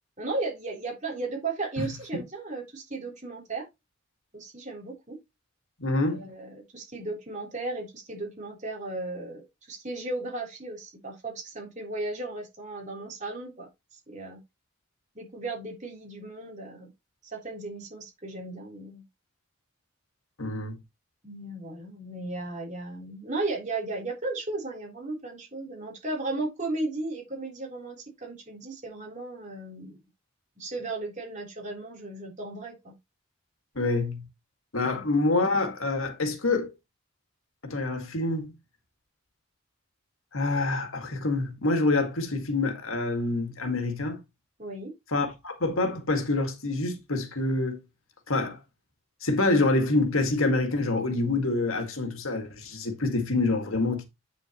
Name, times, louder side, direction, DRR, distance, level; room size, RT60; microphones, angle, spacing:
voice 1, 0.2-3.7 4.3-5.2 6.1-13.7 14.1-14.4 15.2-16.9 17.2-19.0 21.2-30.0 30.6-33.0 44.6-44.9, right 2 dB, 35° right, 3.7 m, -35 dB
voice 2, 5.8-6.2 20.4-20.8 33.8-34.3 34.7-36.7 37.6-38.5 40.3-44.2 45.1-47.8 48.3-48.6 49.2-54.0, left 2 dB, 85° left, 1.9 m, -26 dB
8.7 x 6.8 x 3.0 m
head